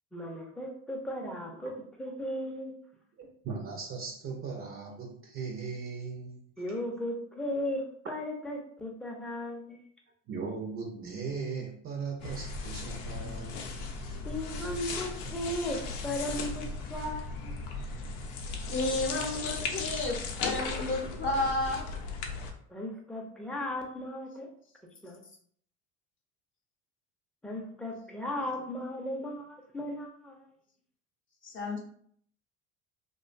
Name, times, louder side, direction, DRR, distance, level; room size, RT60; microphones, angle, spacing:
voice 1, 0.1-1.7 2.0-2.8 6.6-9.8 14.3-17.5 22.7-24.5 25.0-25.2 27.4-30.5, left 1 dB, 5° left, 0 dB, 0.5 m, -36 dB
voice 2, 3.2-6.4 7.6-7.7 10.3-13.8 14.1-14.2, right 5 dB, 40° right, 1 dB, 0.6 m, -38 dB
sound 1, 12.2-22.5, left 3 dB, 80° left, 0.6 m, -37 dB
voice 3, 18.7-21.9 31.4-31.8, left 2 dB, 40° left, 0 dB, 0.7 m, -31 dB
2.4 x 2.2 x 2.4 m, 0.62 s
supercardioid pair, 85°, 32 cm